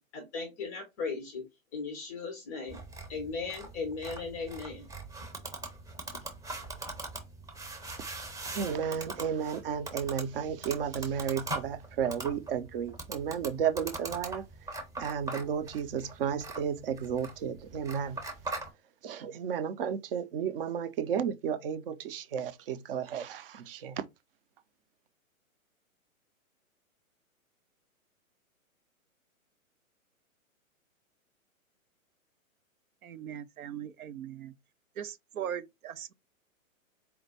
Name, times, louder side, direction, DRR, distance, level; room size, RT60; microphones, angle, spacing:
voice 1, 0.0-1.5 1.7-2.8 3.1-4.9, left 4 dB, 15° left, 0.4 m, -37 dB
sound 1, 2.7-18.7, right 2 dB, 10° right, 0.8 m, -41 dB
voice 2, 8.3-18.3 19.0-24.1, right 8 dB, 40° right, 0.6 m, -33 dB
voice 3, 33.0-34.5 35.0-36.1, right 9 dB, 80° right, 0.7 m, -39 dB
4.4 x 2.2 x 3.9 m
hypercardioid pair, 135°, 42 cm